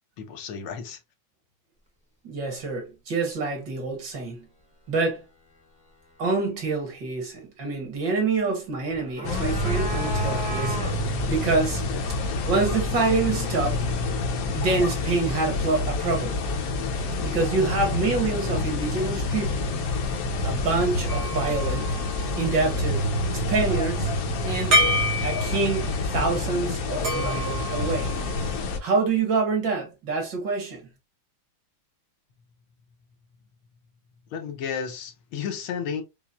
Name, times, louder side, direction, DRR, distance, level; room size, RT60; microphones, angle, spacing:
voice 1, 0.2-1.0 34.3-36.0, left 7 dB, 85° left, 1.6 m, -32 dB
voice 2, 2.2-4.5 4.9-5.2 6.2-10.8 11.3-11.8 12.5-13.8 14.5-16.4 17.2-19.7 20.4-22.0 22.4-24.1 24.4-24.8 25.2-28.1 28.8-30.8, right 3 dB, 60° right, 1.9 m, -26 dB
sound 1, 8.9-11.2, equal, 10° right, 0.3 m, -34 dB
sound 2, 9.2-28.8, left 2 dB, 60° left, 0.9 m, -27 dB
sound 3, 21.1-22.8 24.7-26.0 27.0-28.6, equal, 85° right, 2.1 m, -28 dB
5.6 x 2.0 x 2.3 m
omnidirectional pair, 2.2 m